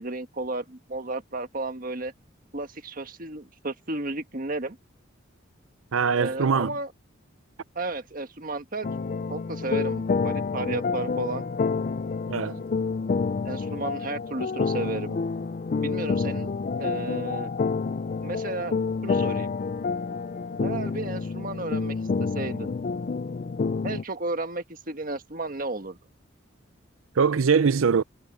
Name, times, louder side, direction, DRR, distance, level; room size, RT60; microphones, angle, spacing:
voice 1, 0.0-2.1 2.5-4.8 6.1-6.9 7.7-8.9 9.3-11.4 13.4-15.2 15.8-17.5 18.2-18.8 19.0-19.5 20.6-22.7 23.8-26.0, right 2 dB, 45° right, 1.6 m, -33 dB
voice 2, 5.9-6.7 12.3-12.6 27.2-28.0, right 5 dB, 90° right, 0.6 m, -22 dB
sound 1, 8.8-24.0, left 4 dB, 40° left, 0.4 m, -28 dB
head